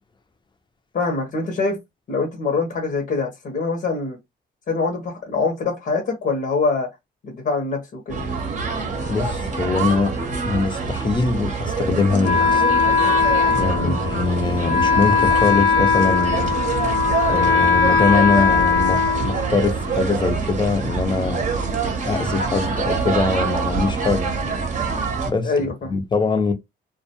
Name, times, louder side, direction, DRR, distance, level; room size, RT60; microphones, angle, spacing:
voice 1, 0.9-1.8 2.1-4.2 4.7-6.9 7.2-8.2 13.7-14.0 25.4-25.9, left 4 dB, 50° left, 0.9 m, -24 dB
sound 1, 8.1-25.3, right 4 dB, 40° right, 0.8 m, -25 dB
voice 2, 9.1-10.1 10.4-12.6 13.5-16.6 17.3-21.4 22.0-24.3 25.3-25.5 25.9-26.5, left 4 dB, 25° left, 0.6 m, -22 dB
Wind instrument woodwind instrument, 12.2-20.0, left 5 dB, 70° left, 0.5 m, -19 dB
2.3 x 2.2 x 2.8 m
cardioid pair, 90°, 20 cm